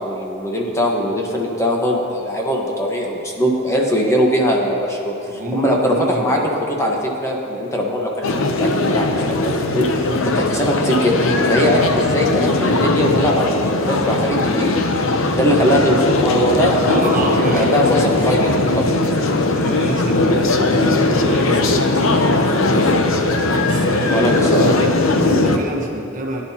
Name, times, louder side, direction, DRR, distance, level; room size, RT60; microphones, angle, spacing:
voice 1, 0.0-6.4 6.8-9.9 10.2-11.2 11.5-14.7 15.3-16.9 17.2-18.9 23.8-24.7, equal, 15° left, -1 dB, 1.2 m, -20 dB
voice 2, 5.3-6.6 12.1-12.2 15.4-15.6 16.8-18.2 19.5-20.9 21.3-22.9 23.6-26.4, right 1 dB, 40° right, 0 dB, 1.2 m, -28 dB
sound 1, 8.2-25.6, left 2 dB, 75° left, 0.8 m, -18 dB
17.5 x 10.5 x 2.9 m, 2.6 s
head